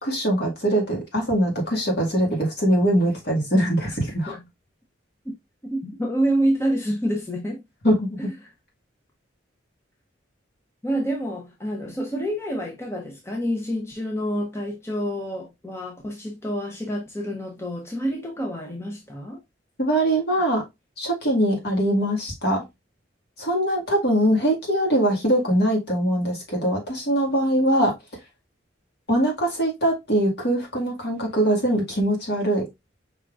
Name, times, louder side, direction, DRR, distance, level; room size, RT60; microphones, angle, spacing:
voice 1, 0.0-4.4 7.8-8.3 19.8-20.6 21.0-22.6 23.4-27.9 29.1-32.7, right 1 dB, 55° left, 2.0 m, -22 dB
voice 2, 5.6-7.6 8.4-8.5 10.8-19.4, equal, 15° left, 0.8 m, -27 dB
5.2 x 3.6 x 2.4 m
head